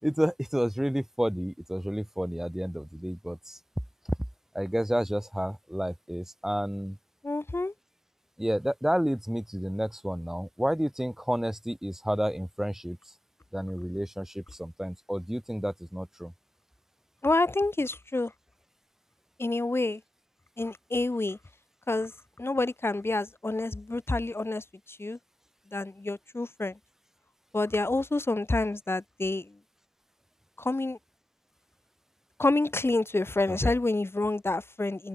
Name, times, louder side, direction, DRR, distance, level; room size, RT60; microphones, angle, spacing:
voice 1, 0.0-3.6 4.5-7.0 8.4-13.0 13.5-16.3 33.5-33.7, equal, 5° right, 3.3 m, -30 dB
voice 2, 7.2-7.7 17.2-18.3 19.4-20.0 20.6-21.4 21.9-25.2 25.7-26.8 27.5-29.6 30.6-31.0 32.4-35.1, left 2 dB, 30° left, 1.9 m, -28 dB
open air
wide cardioid pair, 60°, 8 cm